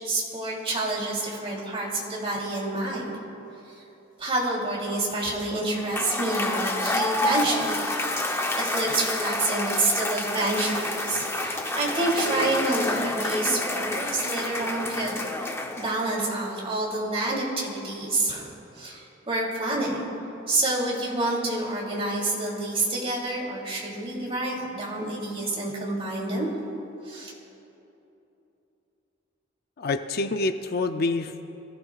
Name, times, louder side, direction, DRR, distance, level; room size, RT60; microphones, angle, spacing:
voice 1, 0.0-3.0 3.6-3.8 4.2-7.8 8.5-15.1 15.8-20.1 20.5-26.5 27.0-27.3, right 2 dB, 30° right, -4 dB, 3.3 m, -28 dB
Cheering / Applause / Crowd, 5.7-16.2, left 1 dB, 15° left, 0.9 m, -29 dB
voice 2, 29.8-31.4, left 3 dB, 50° left, 8 dB, 0.5 m, -27 dB
25.5 x 15.5 x 2.5 m, 2.9 s
head